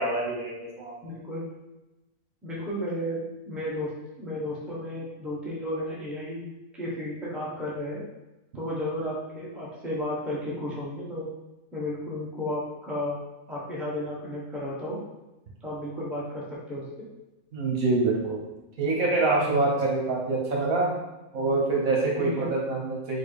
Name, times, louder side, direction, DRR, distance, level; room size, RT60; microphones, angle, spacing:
voice 1, 0.0-0.9 17.5-18.4 18.8-20.9 21.3-23.2, right 3 dB, 70° right, -2 dB, 1.5 m, -25 dB
voice 2, 1.0-1.5 2.4-3.9 4.2-8.0 8.5-11.3 11.7-13.2 13.5-15.0 15.6-17.1 22.2-22.5, left 1 dB, ahead, -6 dB, 1.0 m, -33 dB
4.6 x 2.4 x 4.7 m, 1.0 s
omnidirectional pair, 1.5 m